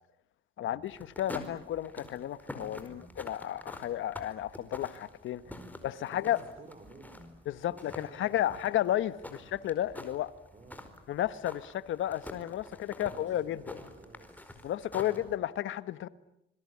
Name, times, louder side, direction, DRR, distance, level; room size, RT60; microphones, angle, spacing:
voice 1, 0.6-5.4 5.8-6.4 7.5-10.3 11.1-13.8 14.6-16.1, left 12 dB, 75° left, 1.3 m, -33 dB
sound 1, 0.9-15.4, left 1 dB, 10° left, 4.7 m, -47 dB
voice 2, 5.4-7.3 7.7-8.7 9.3-9.5 10.5-11.0 12.7-15.3, right 2 dB, 35° right, 5.3 m, -55 dB
26.5 x 22.0 x 9.8 m
cardioid pair, 90°, 20 cm